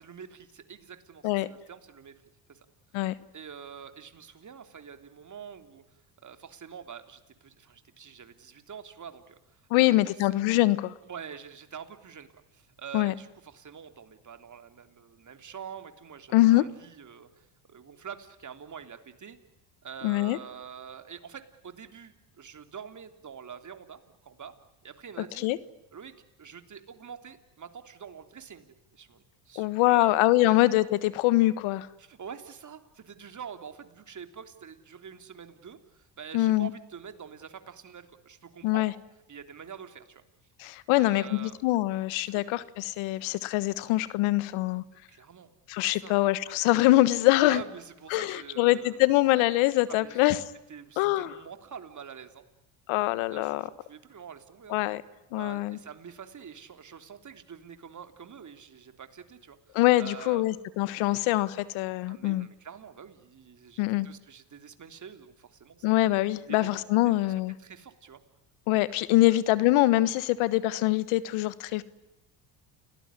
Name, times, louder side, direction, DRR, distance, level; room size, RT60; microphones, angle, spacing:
voice 1, 0.0-2.1 2.5-2.7 2.9-3.0 3.3-10.1 11.0-19.4 19.8-24.5 24.8-25.5 25.9-26.1 26.4-30.6 32.0-38.9 39.3-40.2 40.9-41.6 42.2-42.4 44.9-45.5 45.9-46.1 47.4-49.0 49.9-50.4 50.7-52.4 53.3-54.8 55.4-60.5 61.0-61.2 62.1-65.9 66.5-66.8 67.0-67.3 67.6-68.2 69.3-69.4, right 7 dB, 35° right, 8 dB, 3.4 m, -46 dB
voice 2, 9.7-10.9 12.9-13.1 16.3-16.6 20.0-20.4 25.4-25.6 29.5-31.9 36.3-36.7 38.6-38.9 40.6-44.8 45.7-47.6 48.1-50.4 51.0-51.3 52.9-53.6 54.7-55.0 55.3-55.8 59.7-62.5 63.8-64.1 65.8-67.5 68.7-71.8, left 17 dB, 75° left, 17 dB, 1.5 m, -24 dB
29.5 x 19.0 x 9.9 m, 0.94 s
supercardioid pair, 80°, 49 cm